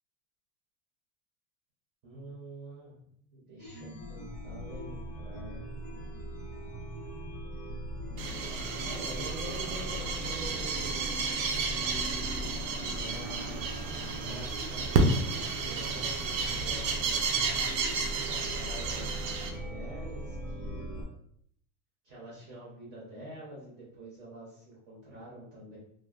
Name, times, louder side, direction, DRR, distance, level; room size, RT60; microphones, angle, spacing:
voice 1, 2.0-3.0 3.3-5.6 8.8-11.3 13.0-17.2 18.2-21.1 22.0-25.8, right 1 dB, 25° right, -6 dB, 0.6 m, -46 dB
Chime, 3.6-21.0, equal, 25° left, 0.4 m, -40 dB
sound 1, 8.2-19.5, right 4 dB, 85° right, 0.6 m, -32 dB
3.2 x 2.2 x 2.3 m, 0.68 s
supercardioid pair, 175°, 39 cm